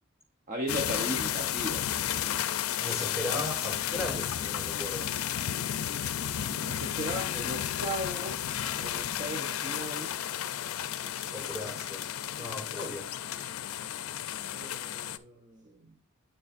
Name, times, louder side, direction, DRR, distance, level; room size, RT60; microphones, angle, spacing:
voice 1, 0.5-1.9 2.3-2.5 6.6-8.5 8.8-10.2 14.5-15.9, equal, 35° right, 0.7 m, -37 dB
sound 1, 0.7-15.2, left 10 dB, 85° left, 0.4 m, -33 dB
voice 2, 2.8-5.1 11.3-12.1 12.4-13.1, left 1 dB, 5° right, 2.4 m, -37 dB
8.9 x 6.8 x 2.5 m
head